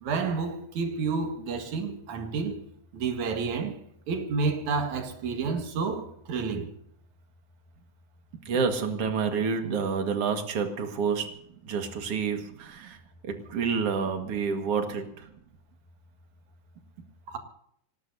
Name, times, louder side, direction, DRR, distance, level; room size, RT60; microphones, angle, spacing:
voice 1, 0.0-2.6 2.9-3.8 4.1-6.7 17.3-17.4, right 4 dB, 75° right, 3.2 m, -30 dB
voice 2, 8.5-11.3 11.6-13.0 13.2-15.3, right 5 dB, 55° right, 2.6 m, -28 dB
25.0 x 18.5 x 2.7 m
omnidirectional pair, 3.4 m